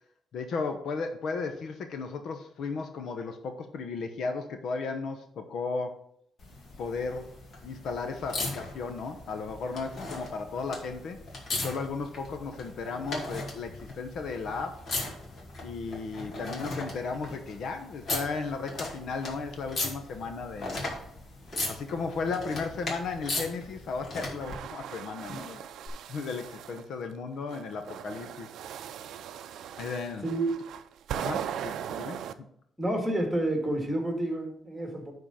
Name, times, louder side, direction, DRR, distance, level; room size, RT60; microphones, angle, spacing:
voice 1, 0.3-5.9 6.8-7.3 7.6-11.2 11.5-14.8 15.6-20.8 21.7-25.7 26.1-28.5 29.8-30.3 31.1-32.5, left 4 dB, 65° left, 6 dB, 0.9 m, -35 dB
sound 1, 6.4-24.6 25.9-26.0, left 2 dB, 45° left, 2.1 m, -38 dB
sound 2, 24.2-26.8 27.5-32.3, right 9 dB, 75° right, 0.5 m, -39 dB
voice 2, 30.2-30.6 32.8-35.1, right 1 dB, 10° right, 2 dB, 2.2 m, -29 dB
10.0 x 3.9 x 5.7 m, 0.69 s
cardioid pair, 120°, 0 cm